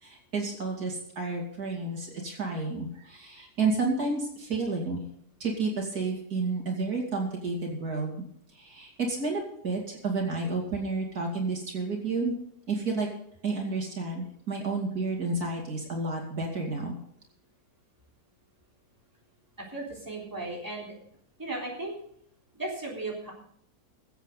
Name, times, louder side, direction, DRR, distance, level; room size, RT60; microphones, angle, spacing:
voice 1, 0.0-5.0 5.4-8.2 8.5-12.3 12.7-13.1 13.4-16.9, right 3 dB, 70° right, 0 dB, 3.1 m, -31 dB
voice 2, 19.6-21.0 21.4-21.9 22.5-23.3, right 2 dB, 10° right, -3 dB, 3.6 m, -36 dB
22.0 x 8.2 x 4.0 m, 0.69 s
omnidirectional pair, 1.7 m